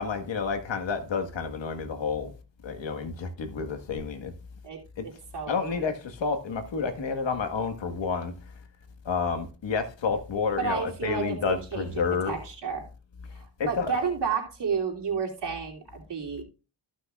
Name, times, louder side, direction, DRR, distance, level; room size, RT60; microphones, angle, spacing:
voice 1, 0.0-2.3 2.6-4.3 5.0-5.1 5.5-8.3 9.0-12.3 13.6-13.9, left 5 dB, 75° left, 1.6 m, -30 dB
voice 2, 4.6-5.8 10.6-12.8 13.7-16.4, right 6 dB, 65° right, 3.0 m, -31 dB
14.5 x 6.2 x 2.4 m
cardioid pair, 60°, 45 cm